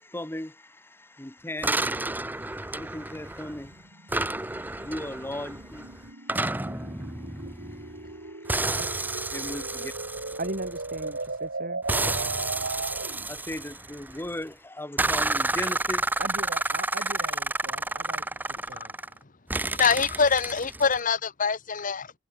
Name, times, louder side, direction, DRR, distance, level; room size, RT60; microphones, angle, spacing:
voice 1, 0.0-8.8 9.1-9.9 10.3-10.4 13.3-16.2 16.8-17.4, left 1 dB, 10° left, 1.1 m, -39 dB
sound 1, 1.6-3.7 4.1-8.1 8.5-11.3 11.9-14.3 15.0-19.2 19.5-21.0, right 2 dB, 10° right, 0.9 m, -30 dB
sound 2, 2.0-13.3, right 3 dB, 65° right, 2.6 m, -38 dB
voice 2, 10.4-11.8 16.2-18.2 18.7-18.9, right 2 dB, 50° right, 7.5 m, -38 dB
voice 3, 19.8-22.2, left 5 dB, 45° left, 1.2 m, -24 dB
head